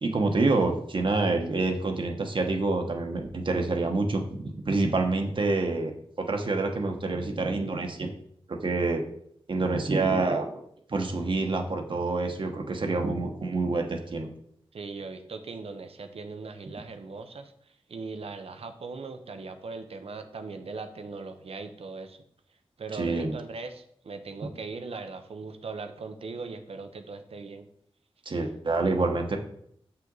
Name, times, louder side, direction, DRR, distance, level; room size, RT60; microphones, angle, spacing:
voice 1, 0.0-5.9 6.2-8.1 8.5-9.0 9.5-10.6 10.9-14.3 22.9-23.3 28.3-29.4, right 3 dB, 55° right, 3 dB, 1.1 m, -27 dB
voice 2, 14.7-22.2 22.8-27.7, right 4 dB, 85° right, 8 dB, 0.8 m, -39 dB
7.4 x 5.7 x 4.0 m, 0.67 s
wide cardioid pair, 110°, 10 cm